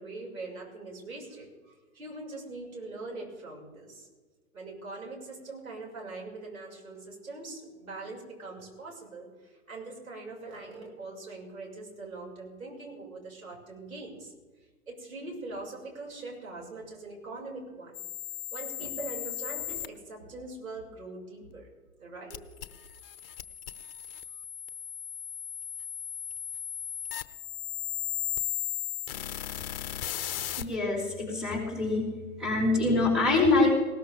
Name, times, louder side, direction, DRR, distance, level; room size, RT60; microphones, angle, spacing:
voice 1, 0.0-4.1 4.5-9.3 9.7-14.3 14.9-18.0 18.5-21.7 22.0-22.4, right 2 dB, 75° right, -2 dB, 6.2 m, -42 dB
sound 1, 17.9-19.9 22.3-30.6, left 11 dB, 40° left, 0.9 m, -36 dB
voice 2, 30.6-32.1 32.4-33.7, left 3 dB, ahead, -4 dB, 4.9 m, -25 dB
19.5 x 18.5 x 3.6 m, 1.3 s
figure-of-eight pair, 110°, 42 cm